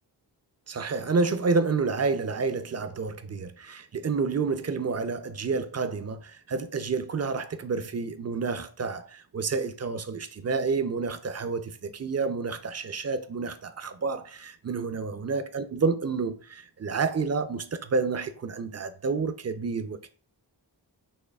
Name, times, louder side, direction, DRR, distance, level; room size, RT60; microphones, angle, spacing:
voice 1, 0.7-20.1, right 4 dB, 35° right, 0.5 m, -29 dB
6.4 x 3.0 x 2.3 m
cardioid pair, 55°, 45 cm